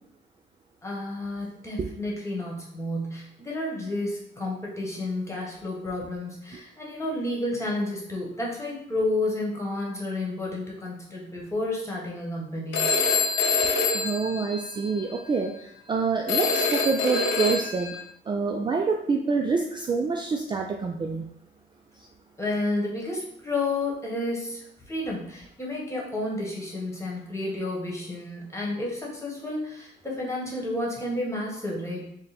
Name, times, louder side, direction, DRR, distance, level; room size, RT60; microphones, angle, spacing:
voice 1, 0.8-12.9 22.4-32.1, left 2 dB, 15° left, -3 dB, 1.3 m, -31 dB
Telephone, 12.7-15.1 16.3-18.0, left 4 dB, 75° left, 0.8 m, -25 dB
voice 2, 13.9-15.5 15.9-17.9 18.3-21.3, right 4 dB, 25° right, 2 dB, 0.3 m, -26 dB
3.7 x 2.2 x 4.1 m, 0.73 s
cardioid pair, 90°, 20 cm